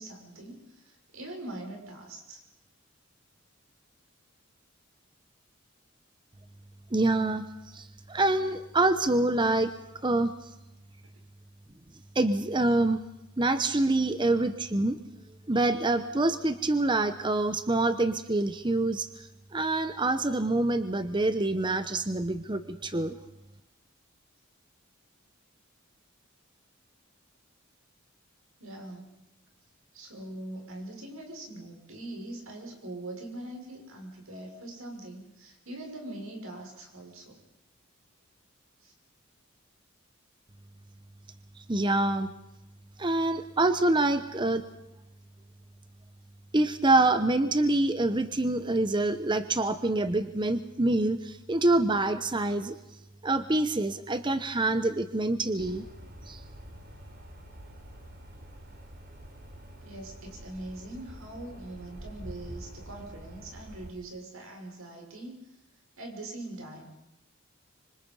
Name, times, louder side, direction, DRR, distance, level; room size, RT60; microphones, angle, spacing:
voice 1, 0.0-2.4 28.6-29.1 29.9-37.4 38.8-38.9 58.7-58.8 59.8-65.4 66.0-67.0, right 1 dB, 85° right, 2 dB, 6.2 m, -42 dB
voice 2, 6.9-7.5 7.7-9.7 10.0-10.3 12.1-13.0 13.4-15.0 15.5-23.2 41.6-42.3 43.0-44.6 46.5-52.8 53.2-55.9 56.3-56.4, right 2 dB, 25° right, 11 dB, 0.9 m, -26 dB
sound 1, 55.6-63.9, equal, 50° right, 3.6 m, -46 dB
25.5 x 25.5 x 5.5 m, 0.92 s
head